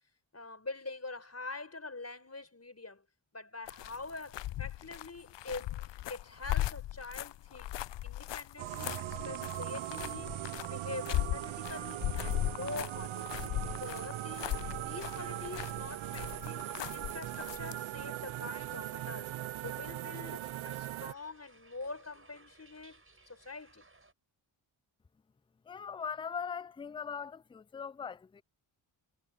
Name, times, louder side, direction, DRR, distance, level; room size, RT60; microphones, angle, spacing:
voice 1, 0.3-3.0 3.3-7.7 8.0-19.4 19.6-23.0 23.3-23.9, left 3 dB, 30° left, 4.9 m, -45 dB
sound 1, 3.7-17.8, left 15 dB, 60° left, 0.5 m, -38 dB
sound 2, 8.6-21.1, right 14 dB, 75° right, 0.7 m, -40 dB
sound 3, 14.9-24.1, right 3 dB, 25° right, 4.6 m, -62 dB
voice 2, 25.7-28.4, left 6 dB, 10° left, 0.3 m, -40 dB
cardioid pair, 45°, 48 cm